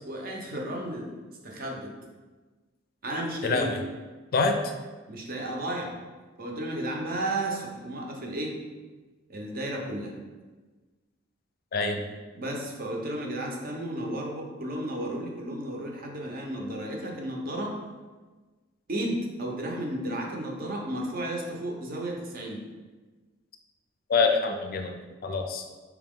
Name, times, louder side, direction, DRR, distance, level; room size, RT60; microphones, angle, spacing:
voice 1, 0.0-1.1 1.4-1.9 3.0-3.7 5.1-6.0 6.4-8.6 9.3-10.2 12.3-17.7 18.9-22.6, right 1 dB, 50° right, 0 dB, 0.8 m, -33 dB
voice 2, 3.4-3.8 4.3-4.7 11.7-12.0 24.1-24.9 25.2-25.6, left 4 dB, 50° left, 5 dB, 0.4 m, -25 dB
4.8 x 2.9 x 3.6 m, 1.3 s
head